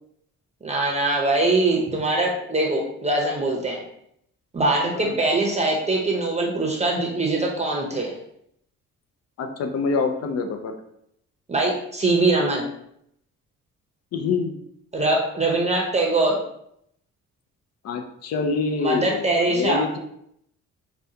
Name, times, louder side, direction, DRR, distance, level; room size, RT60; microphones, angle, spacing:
voice 1, 0.6-3.8 4.5-8.2 11.5-12.7 14.9-16.4 18.8-19.8, right 2 dB, 20° right, 0 dB, 0.7 m, -22 dB
voice 2, 9.4-10.7 14.1-14.6 17.8-20.0, left 4 dB, 55° left, 6 dB, 0.6 m, -26 dB
4.9 x 2.3 x 2.7 m, 0.74 s
cardioid pair, 90°, 30 cm